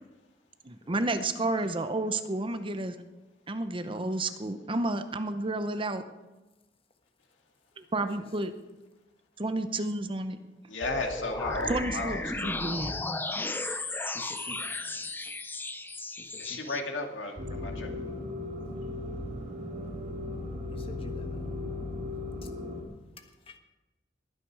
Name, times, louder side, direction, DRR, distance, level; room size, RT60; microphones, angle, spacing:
voice 1, 0.6-3.0 3.5-6.0 7.8-8.5 9.4-10.4 11.7-13.0, right 2 dB, 30° right, 9 dB, 0.8 m, -31 dB
voice 2, 10.7-12.6 16.4-17.9, left 2 dB, 90° left, 2 dB, 2.3 m, -34 dB
sound 1, 10.8-16.8, left 2 dB, 10° left, 0.7 m, -35 dB
voice 3, 13.6-15.3 16.1-17.1 20.7-21.7 22.4-22.5 23.2-23.6, left 2 dB, 30° left, 5 dB, 1.3 m, -51 dB
sound 2, 17.4-22.8, left 2 dB, 55° right, 4.1 m, -36 dB
21.0 x 9.5 x 4.8 m, 1.1 s
head